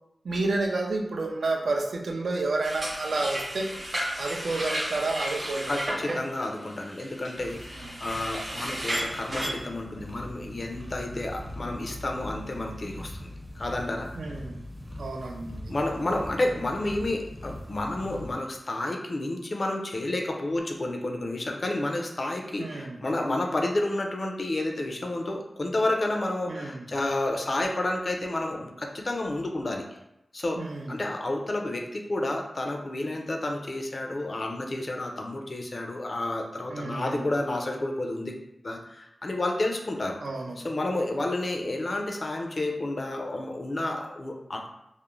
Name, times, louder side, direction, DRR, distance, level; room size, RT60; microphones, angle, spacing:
voice 1, 0.2-3.7 4.2-6.2 7.7-7.9 9.9-10.2 14.1-14.6 15.0-15.7 22.6-23.0 26.5-26.9 30.6-31.0 36.7-37.3 40.2-40.6, right 2 dB, 85° right, 2 dB, 0.3 m, -30 dB
sound 1, 2.6-9.5, equal, 45° right, 0.8 m, -33 dB
voice 2, 5.7-14.1 15.7-29.8 30.3-38.3 38.6-40.2 40.6-44.7, left 2 dB, 50° left, 2 dB, 0.4 m, -30 dB
sound 2, 7.4-18.3, left 1 dB, 10° right, 0.5 m, -42 dB
2.4 x 2.0 x 3.0 m, 0.84 s
wide cardioid pair, 70°, 0 cm